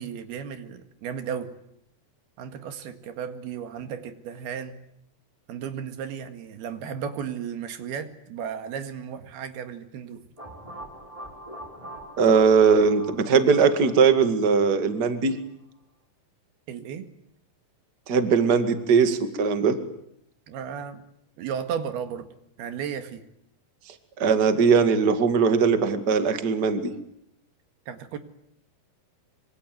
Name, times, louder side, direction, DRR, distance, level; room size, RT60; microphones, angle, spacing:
voice 1, 0.0-1.5 2.4-4.8 5.5-10.2 16.7-17.1 20.5-21.1 21.4-22.3 22.6-23.2 27.9-28.2, right 7 dB, 90° right, 8 dB, 3.9 m, -34 dB
sound 1, 10.4-15.1, right 1 dB, 10° right, 5.1 m, -43 dB
voice 2, 12.2-15.3 18.1-19.8 24.2-26.8, right 5 dB, 35° right, 8 dB, 2.1 m, -20 dB
26.0 x 24.5 x 9.4 m, 0.75 s
omnidirectional pair, 4.4 m